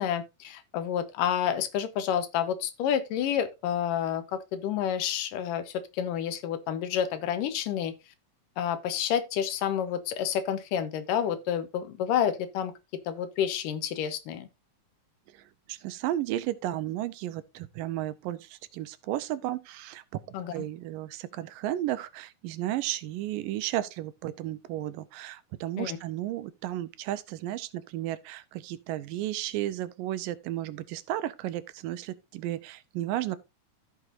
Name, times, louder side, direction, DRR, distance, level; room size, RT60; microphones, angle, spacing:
voice 1, 0.0-7.9 8.6-12.7 13.1-14.5 20.3-20.5 25.8-26.0, left 9 dB, 75° left, 2.5 m, -29 dB
voice 2, 15.3-20.2 20.5-33.4, right 13 dB, 85° right, 2.3 m, -33 dB
15.0 x 6.2 x 2.6 m
omnidirectional pair, 4.0 m